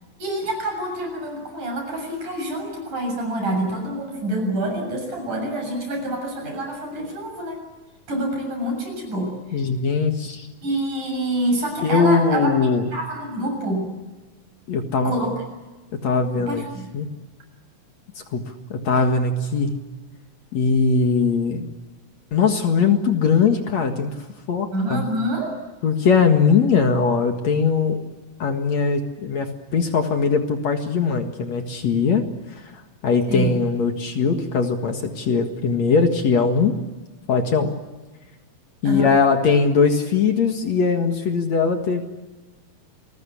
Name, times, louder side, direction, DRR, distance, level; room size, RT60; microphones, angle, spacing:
voice 1, 0.2-7.6 8.1-9.3 10.6-12.5 12.9-13.9 15.0-15.3 16.4-16.9 24.7-25.5 33.3-33.5 38.8-39.1, right 1 dB, 60° right, 4 dB, 8.6 m, -26 dB
voice 2, 9.5-10.5 11.8-12.9 14.7-15.1 16.0-16.6 16.9-17.1 18.3-18.4 18.7-19.7 20.5-21.7 22.3-24.1 24.5-25.0 25.8-28.0 28.4-32.2 32.6-32.7 33.0-36.7 37.3-37.7 38.8-42.0, left 5 dB, 55° left, 5 dB, 2.7 m, -20 dB
29.0 x 20.5 x 8.5 m, 1.2 s
omnidirectional pair, 4.0 m